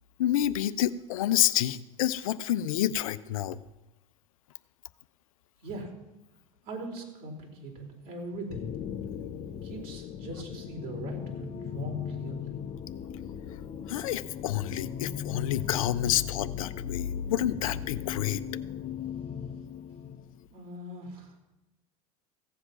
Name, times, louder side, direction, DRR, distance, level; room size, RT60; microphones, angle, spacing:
voice 1, 0.2-3.6 13.9-18.4, left 12 dB, 75° left, 14 dB, 0.6 m, -28 dB
voice 2, 6.7-8.7 9.6-12.6 20.5-21.3, right 2 dB, 55° right, 0 dB, 4.3 m, -40 dB
sound 1, 8.5-20.5, left 9 dB, 40° left, 0.9 m, -38 dB
15.5 x 7.9 x 5.9 m, 1.0 s
hypercardioid pair, 80°, 18 cm